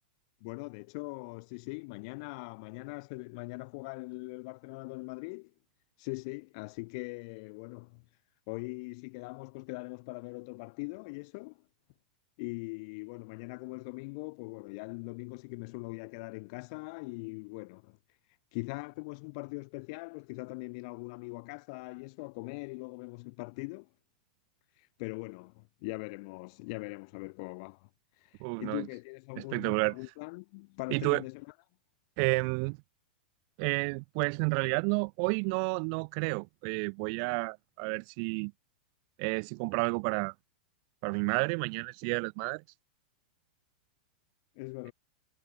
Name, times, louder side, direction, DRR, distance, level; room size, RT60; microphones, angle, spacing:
voice 1, 0.4-5.5 6.0-8.0 8.5-11.6 12.4-18.0 18.5-23.9 24.8-27.9 28.2-31.5 44.6-44.9, left 29 dB, 50° left, 5.4 m, -41 dB
voice 2, 28.4-28.9 29.4-29.9 30.9-31.2 32.2-32.8 33.6-38.5 39.2-40.3 41.0-42.6, right 40 dB or more, 45° right, 1.6 m, -31 dB
figure-of-eight pair, 95°, 4 cm